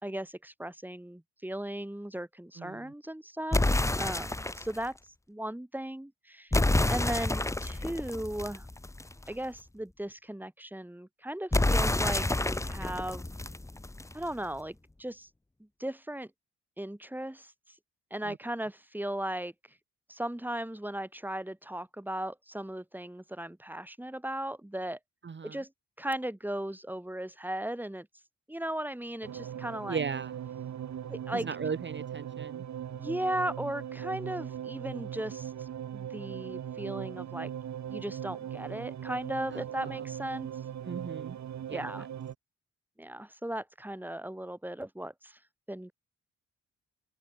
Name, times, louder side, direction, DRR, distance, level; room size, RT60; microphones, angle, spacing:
voice 1, 0.0-5.0 5.3-6.5 6.9-8.7 9.3-13.3 14.1-15.3 15.8-16.3 16.8-17.5 18.1-19.5 20.1-25.0 25.4-25.7 26.0-28.1 28.5-30.0 31.0-31.5 32.9-37.5 37.9-40.5 41.7-42.1 43.0-45.4 45.7-45.9, right 1 dB, 5° right, 4.2 m, -37 dB
voice 2, 2.6-2.9 18.2-18.4 25.2-25.6 29.9-30.3 31.3-32.6 39.5-40.0 40.8-41.4 41.7-42.1, right 5 dB, 35° right, 1.6 m, -37 dB
sound 1, 3.5-4.8 6.5-9.2 11.5-14.2, left 2 dB, 10° left, 0.9 m, -28 dB
sound 2, 29.2-42.3, right 9 dB, 65° right, 1.2 m, -39 dB
open air
cardioid pair, 95°, 30 cm